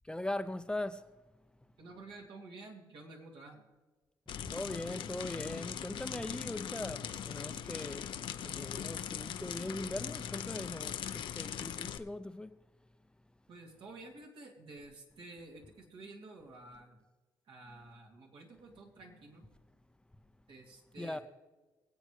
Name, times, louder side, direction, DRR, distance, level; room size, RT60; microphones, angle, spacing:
voice 1, 0.0-1.1 4.5-8.1 8.4-12.6 21.0-21.2, left 1 dB, 10° left, 0.6 m, -40 dB
voice 2, 1.8-3.6 13.5-17.0 17.5-19.5 20.5-21.2, right 2 dB, 75° right, 2.6 m, -51 dB
sound 1, 4.3-12.0, left 9 dB, 70° left, 0.6 m, -40 dB
23.0 x 8.0 x 3.2 m
cardioid pair, 80°, 9 cm